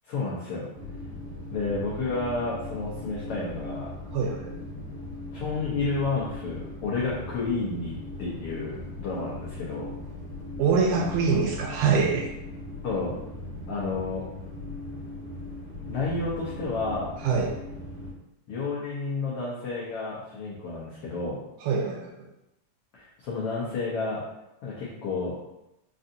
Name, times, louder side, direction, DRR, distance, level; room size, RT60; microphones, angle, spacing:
voice 1, 0.1-0.7 1.5-3.9 5.3-9.9 12.8-13.1 13.7-14.3 15.8-17.1 18.5-21.4 22.9-24.2 24.6-25.3, left 3 dB, 90° left, -7 dB, 1.3 m, -31 dB
sound 1, 0.7-18.1, left 2 dB, 45° left, 1.7 m, -39 dB
voice 2, 4.1-4.6 10.6-12.2 17.2-17.5 21.6-22.1, right 5 dB, 80° right, -1 dB, 1.8 m, -24 dB
5.4 x 2.5 x 2.6 m, 0.88 s
omnidirectional pair, 3.7 m